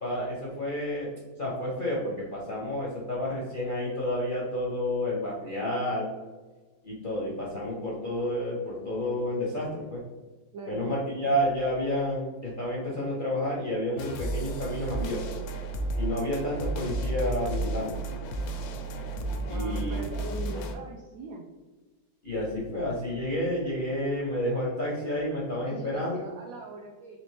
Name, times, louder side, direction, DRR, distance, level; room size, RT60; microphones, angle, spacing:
voice 1, 0.0-1.1 1.4-6.1 6.8-10.0 10.7-15.4 16.0-18.0 19.5-20.0 20.5-20.6 22.2-26.3, left 1 dB, 55° left, -5 dB, 0.6 m, -30 dB
voice 2, 10.5-10.9 19.5-21.5 25.6-27.2, right 3 dB, 85° right, 1 dB, 0.7 m, -41 dB
sound 1, 14.0-20.8, right 2 dB, 80° left, 1.3 m, -32 dB
4.2 x 3.0 x 3.1 m, 1.3 s
omnidirectional pair, 2.0 m